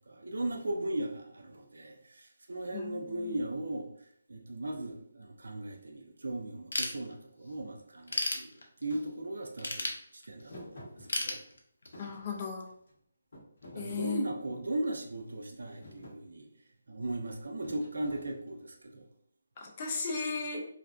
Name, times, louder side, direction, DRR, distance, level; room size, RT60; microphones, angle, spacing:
voice 1, 0.1-3.9 4.3-8.5 8.8-11.4 13.8-16.5 16.9-19.1, right 1 dB, 70° right, 3 dB, 0.5 m, -37 dB
voice 2, 2.7-3.4 12.0-12.7 13.7-14.3 19.6-20.7, left 5 dB, 20° left, 1 dB, 0.3 m, -36 dB
Ratchet pawl / Tools, 6.7-7.5 7.9-9.0 9.6-10.6 11.1-12.1, left 2 dB, 80° left, 0.5 m, -34 dB
Thump thud, 8.9-9.1 10.5-11.6 11.9-12.9 13.3-14.8 15.3-15.6 15.8-16.2 17.6-18.7, left 1 dB, 45° left, 0.9 m, -50 dB
2.4 x 2.1 x 2.4 m, 0.66 s
hypercardioid pair, 175°, 0 cm